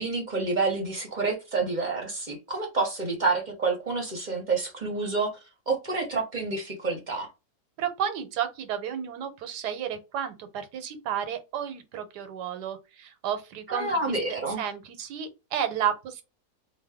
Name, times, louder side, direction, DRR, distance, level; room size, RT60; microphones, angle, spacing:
voice 1, 0.0-5.4 5.7-7.3 13.7-14.6, right 3 dB, 40° right, 0.7 m, -28 dB
voice 2, 7.8-13.9 14.6-16.2, right 9 dB, 85° right, 1.3 m, -32 dB
2.9 x 2.2 x 3.4 m
omnidirectional pair, 1.7 m